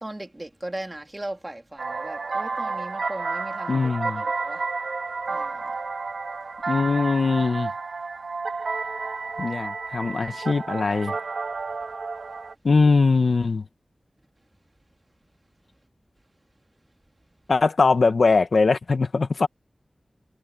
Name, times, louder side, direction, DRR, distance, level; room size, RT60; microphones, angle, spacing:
voice 1, 0.0-4.6 5.3-5.7, right 1 dB, 30° right, 3.2 m, -38 dB
sound 1, 1.8-12.5, right 4 dB, 90° right, 3.4 m, -31 dB
voice 2, 3.7-4.2 6.7-7.7 9.4-11.2 12.6-13.7 17.5-19.5, left 4 dB, 80° left, 1.8 m, -21 dB
cardioid pair, 45°, 0 cm